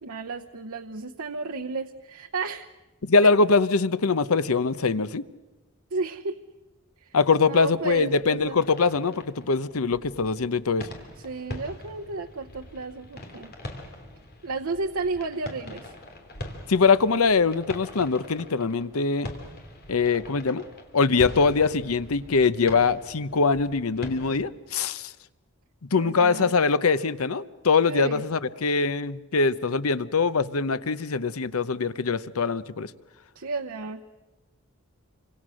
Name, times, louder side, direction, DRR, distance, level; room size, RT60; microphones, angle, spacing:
voice 1, 0.0-2.7 3.2-3.3 5.9-6.3 7.0-8.6 11.2-13.5 14.4-15.9 25.9-26.5 27.9-28.2 33.3-34.0, right 3 dB, 90° right, 4 dB, 0.9 m, -33 dB
voice 2, 3.0-5.2 7.1-10.9 16.7-19.3 19.9-20.6 20.9-25.1 25.9-32.9, left 4 dB, 85° left, 15 dB, 0.8 m, -23 dB
sound 1, 7.7-24.4, left 1 dB, 50° left, 3.2 m, -43 dB
28.5 x 25.0 x 6.4 m, 1.2 s
head